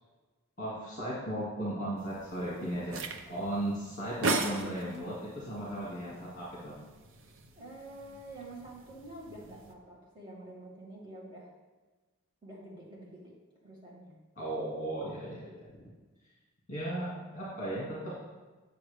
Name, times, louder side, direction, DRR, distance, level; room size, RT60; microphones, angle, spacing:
voice 1, 0.6-6.8 14.4-15.7 16.7-18.2, right 1 dB, 35° left, -7 dB, 2.2 m, -36 dB
sound 1, 2.0-9.7, right 3 dB, 60° right, 0.7 m, -39 dB
voice 2, 7.5-11.5 12.4-13.4 13.6-14.2, right 1 dB, 20° right, -7 dB, 2.4 m, -47 dB
9.4 x 7.2 x 3.5 m, 1.2 s
head